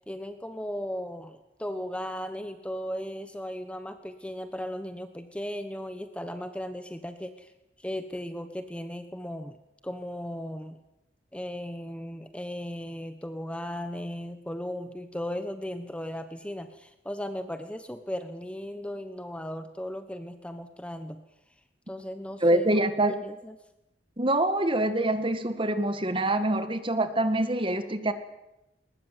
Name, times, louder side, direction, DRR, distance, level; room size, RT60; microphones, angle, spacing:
voice 1, 0.0-7.5 7.8-9.6 9.8-10.8 11.3-21.2 21.9-23.6, equal, 5° left, 9 dB, 1.1 m, -36 dB
voice 2, 22.4-23.1 24.2-28.1, right 1 dB, 30° right, 10 dB, 1.9 m, -25 dB
21.5 x 20.5 x 9.3 m, 0.91 s
head